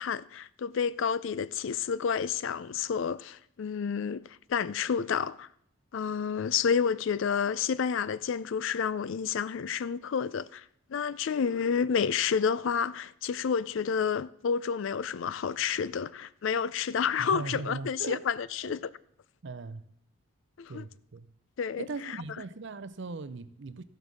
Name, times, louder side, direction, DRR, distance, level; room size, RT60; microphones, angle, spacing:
voice 1, 0.0-5.5 5.9-10.6 10.9-18.9 20.6-20.8 21.6-22.2, left 6 dB, 60° left, 0.4 m, -30 dB
voice 2, 17.2-18.2 18.6-18.8 19.4-19.8 20.7-21.3 21.8-23.8, right 4 dB, 55° right, 0.5 m, -39 dB
15.0 x 5.4 x 6.2 m
head